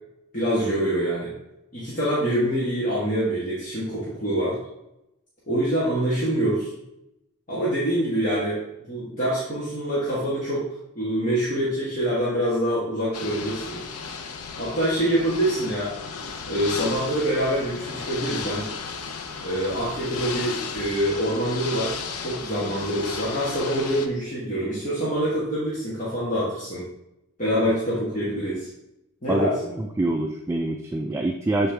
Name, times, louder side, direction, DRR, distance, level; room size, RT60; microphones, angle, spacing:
voice 1, 0.3-1.3 1.7-4.6 5.5-6.7 7.5-8.6 8.9-10.7 10.9-13.8 14.6-15.9 16.5-18.7 19.4-26.9 27.4-28.7 29.2-29.7, right 1 dB, 35° left, -9 dB, 1.5 m, -25 dB
Ocean / Boat Water vehicle, 13.1-24.1, left 5 dB, 85° left, 0.6 m, -34 dB
voice 2, 29.8-31.7, right 2 dB, 10° right, 2 dB, 0.3 m, -25 dB
7.2 x 4.3 x 3.4 m, 0.88 s
head